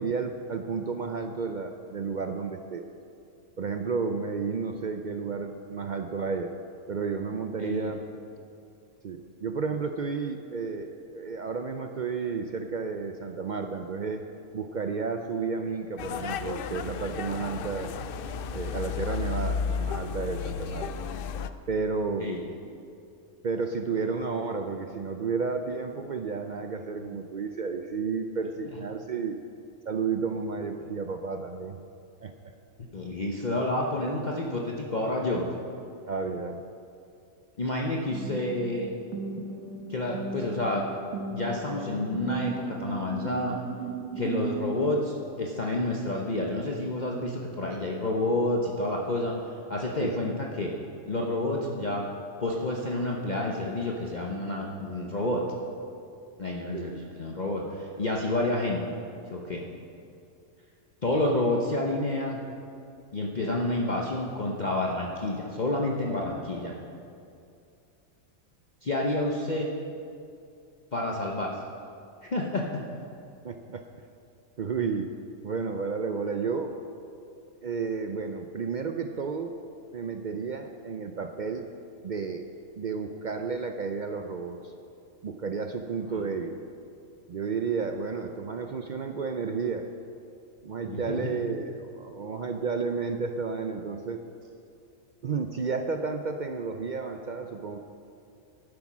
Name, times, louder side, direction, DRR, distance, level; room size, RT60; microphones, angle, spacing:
voice 1, 0.0-2.8 3.6-6.5 6.9-8.0 9.0-14.3 14.5-17.9 18.5-20.9 21.7-22.3 23.4-29.4 29.9-31.8 32.2-32.5 36.1-36.6 50.0-50.1 56.7-56.9 61.1-61.2 73.4-73.8 74.6-75.1 75.4-76.8 77.6-79.6 79.9-81.7 82.0-82.5 82.8-84.7 85.2-86.6 87.3-89.9 90.6-94.2 95.2-97.8, right 5 dB, 65° right, 6 dB, 0.4 m, -32 dB
voice 2, 7.6-7.9 22.2-22.4 27.0-27.1 32.9-35.5 37.6-38.9 39.9-40.8 41.3-43.6 44.2-49.4 49.7-50.7 51.1-52.1 52.4-55.4 56.4-58.8 59.3-59.6 61.0-62.4 63.1-66.8 68.8-69.7 70.9-71.6 72.2-72.8 86.1-86.2 90.9-91.3, left 1 dB, 35° left, -1 dB, 0.9 m, -29 dB
sound 1, 16.0-21.5, left 6 dB, 70° left, 0.5 m, -33 dB
sound 2, 38.1-45.0, right 4 dB, 85° right, 1.5 m, -36 dB
11.5 x 9.5 x 6.1 m, 2.5 s
omnidirectional pair, 1.4 m